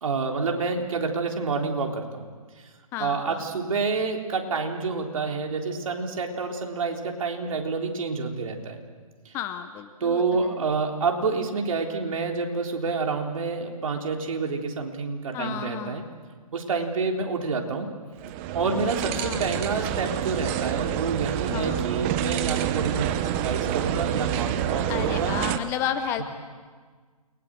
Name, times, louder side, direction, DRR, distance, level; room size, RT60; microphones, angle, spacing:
voice 1, 0.0-2.3 3.0-8.8 9.3-9.4 10.0-16.0 16.5-17.9 18.5-25.4, right 4 dB, 60° right, 2 dB, 3.8 m, -28 dB
voice 2, 2.9-3.5 9.3-10.5 15.3-16.1 19.2-19.4 21.5-21.9 24.9-26.2, left 9 dB, 15° left, 9 dB, 0.7 m, -32 dB
sound 1, 18.2-25.6, right 11 dB, 20° right, 0.8 m, -28 dB
29.0 x 22.0 x 7.7 m, 1.5 s
hypercardioid pair, 155°, 20 cm